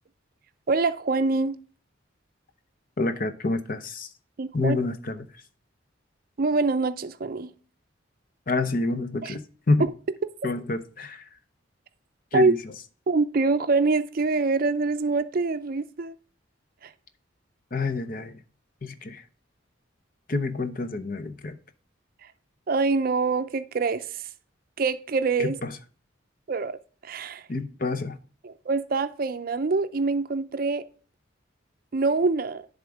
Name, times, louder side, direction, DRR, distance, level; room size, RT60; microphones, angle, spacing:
voice 1, 0.7-1.6 4.4-4.8 6.4-7.5 9.2-9.4 9.8-9.9 12.3-12.5 13.1-16.1 16.8-16.9 22.2-22.3 22.7-24.3 24.8-25.6 26.5-27.5 28.4-30.8 31.9-32.7, right 4 dB, 45° right, 0.5 m, -25 dB
voice 2, 3.0-4.1 4.5-5.4 8.5-9.9 10.4-11.2 12.3-12.6 17.7-18.4 18.8-19.2 20.3-21.6 25.4-25.7 27.5-28.2, left 3 dB, 45° left, 0.7 m, -28 dB
10.5 x 3.7 x 4.9 m
head